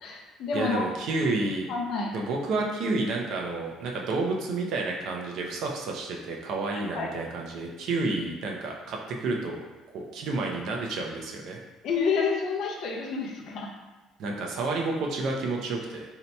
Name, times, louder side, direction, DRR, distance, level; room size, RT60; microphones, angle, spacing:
voice 1, 0.0-0.9 1.7-2.1 6.7-7.1 11.8-13.7, left 5 dB, 50° left, 0 dB, 0.5 m, -29 dB
voice 2, 0.5-1.7 2.1-9.6 9.9-11.6 14.2-16.0, right 3 dB, 55° right, 0 dB, 0.5 m, -30 dB
2.7 x 2.2 x 4.1 m, 1.2 s
cardioid pair, 170°, 0 cm